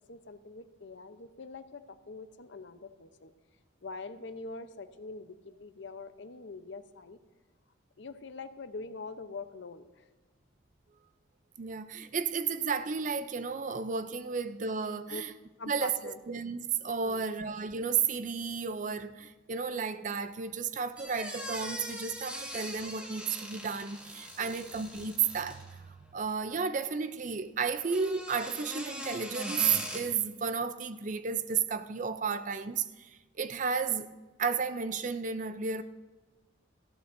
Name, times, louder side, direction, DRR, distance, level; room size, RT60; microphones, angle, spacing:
voice 1, 0.1-3.3 3.8-7.2 8.0-10.0 15.1-15.2 15.6-16.2 17.0-17.3 24.4-24.6, left 3 dB, 65° left, 0.7 m, -44 dB
voice 2, 11.6-15.3 15.7-29.7 29.9-34.1 34.4-35.8, right 5 dB, 40° right, 0.4 m, -33 dB
sound 1, 21.0-25.8 27.8-30.0, equal, 5° right, 1.3 m, -41 dB
18.0 x 14.0 x 2.6 m
head